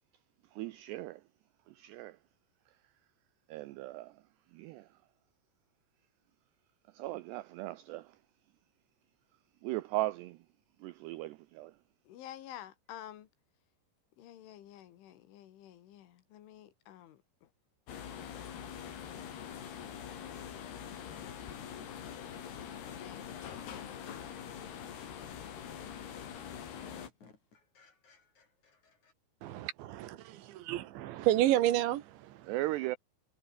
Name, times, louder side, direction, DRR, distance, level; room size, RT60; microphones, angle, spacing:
voice 1, 0.5-1.2 1.7-2.2 3.5-4.2 4.5-4.9 6.9-8.2 9.6-10.4 10.8-11.8 32.5-33.0, right 18 dB, 90° right, 2.4 m, -37 dB
voice 2, 12.1-13.3 14.2-17.5 23.0-23.3, left 12 dB, 75° left, 4.4 m, -50 dB
sound 1, 17.9-27.1, left 8 dB, 55° left, 4.7 m, -44 dB
sound 2, 26.7-29.1, left 4 dB, 40° left, 6.1 m, -61 dB
voice 3, 29.4-32.5, right 14 dB, 75° right, 3.4 m, -31 dB
omnidirectional pair, 5.7 m